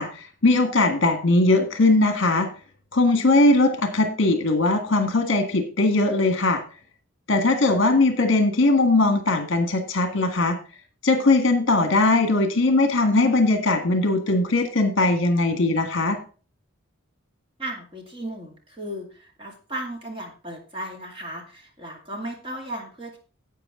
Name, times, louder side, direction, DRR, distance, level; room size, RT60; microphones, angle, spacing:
voice 1, 0.0-2.5 2.9-6.6 7.3-10.6 11.0-16.2, left 2 dB, 55° left, 6 dB, 1.7 m, -20 dB
voice 2, 17.6-23.2, right 1 dB, 25° right, 1 dB, 2.4 m, -35 dB
11.5 x 8.1 x 3.7 m, 0.37 s
head